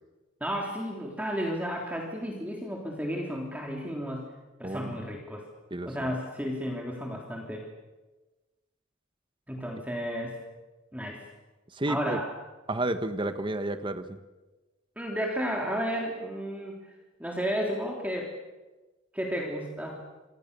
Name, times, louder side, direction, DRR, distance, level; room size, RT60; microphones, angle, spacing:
voice 1, 0.4-4.3 4.6-5.4 5.9-7.6 9.5-10.4 10.9-11.3 11.9-12.3 15.0-16.9 17.2-18.3 19.1-20.1, equal, 10° right, -1 dB, 3.5 m, -32 dB
voice 2, 4.6-5.0 5.7-5.9 11.7-12.2 12.7-14.2, right 1 dB, 25° right, 10 dB, 1.4 m, -31 dB
27.5 x 25.5 x 7.0 m, 1.2 s
head